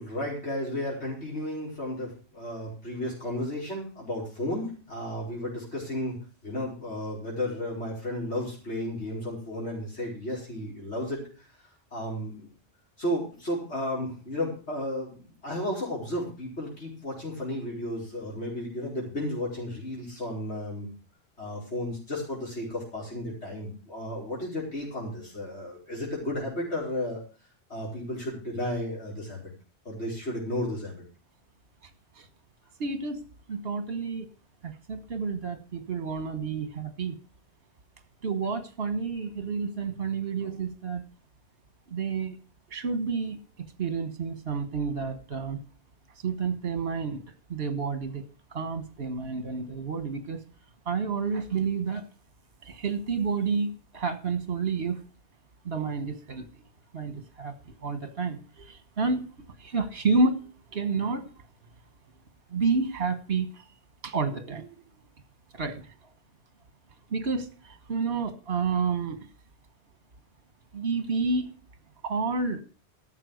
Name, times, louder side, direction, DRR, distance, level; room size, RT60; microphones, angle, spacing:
voice 1, 0.0-6.2 6.4-11.2 11.9-12.5 13.0-20.9 21.4-27.2 27.7-29.5 29.8-31.0, left 1 dB, 85° left, -4 dB, 5.1 m, -33 dB
voice 2, 32.8-33.2 33.5-34.3 34.6-37.2 38.2-41.0 41.9-42.4 42.7-43.4 43.8-45.6 46.2-47.2 47.5-48.2 48.5-50.4 50.9-52.0 52.7-55.0 55.6-56.5 56.9-57.5 57.8-59.3 59.6-60.4 60.7-61.3 62.5-63.5 64.0-64.7 65.5-65.8 67.1-67.5 67.9-69.2 70.7-71.5 72.0-72.6, right 4 dB, 65° right, 9 dB, 1.6 m, -29 dB
13.5 x 7.3 x 6.4 m, 0.38 s
omnidirectional pair, 1.1 m